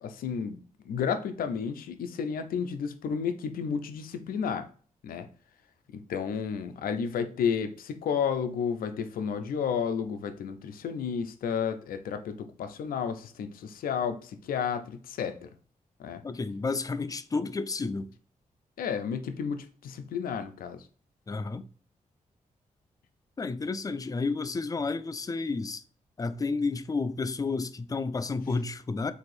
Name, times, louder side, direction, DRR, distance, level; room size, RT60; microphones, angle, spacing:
voice 1, 0.0-0.6 0.9-4.7 5.0-5.3 5.9-15.5 16.0-16.2 18.8-20.8, left 7 dB, 85° left, 0.4 m, -32 dB
voice 2, 16.2-18.1 21.3-21.6 23.4-25.8 26.2-29.1, left 4 dB, 25° left, 0.4 m, -31 dB
3.5 x 2.6 x 3.1 m
cardioid pair, 60°, 15 cm